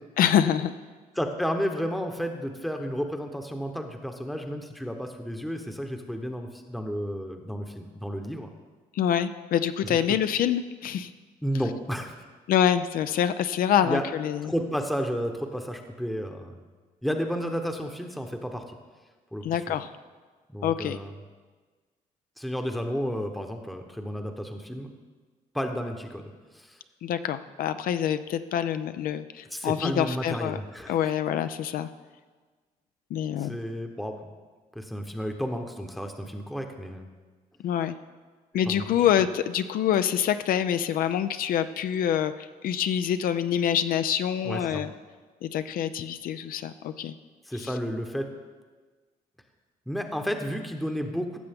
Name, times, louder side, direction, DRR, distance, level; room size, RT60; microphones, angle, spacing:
voice 1, 0.2-0.7 8.9-11.1 12.5-14.5 19.4-19.9 20.6-21.0 27.0-30.6 30.9-31.9 33.1-33.6 37.6-37.9 38.5-44.9 45.4-47.2 47.6-47.7, left 9 dB, 70° left, 11 dB, 0.4 m, -26 dB
voice 2, 1.1-8.5 9.8-10.2 11.4-12.1 13.8-14.0 14.4-16.5 17.0-18.8 19.3-19.8 20.5-21.2 22.4-24.9 25.5-26.8 29.5-30.9 33.4-34.2 34.7-37.1 38.7-38.8 44.4-44.8 47.5-48.3 49.9-51.4, equal, ahead, 4 dB, 0.9 m, -32 dB
15.5 x 6.7 x 3.5 m, 1.4 s
cardioid pair, 85°, 15 cm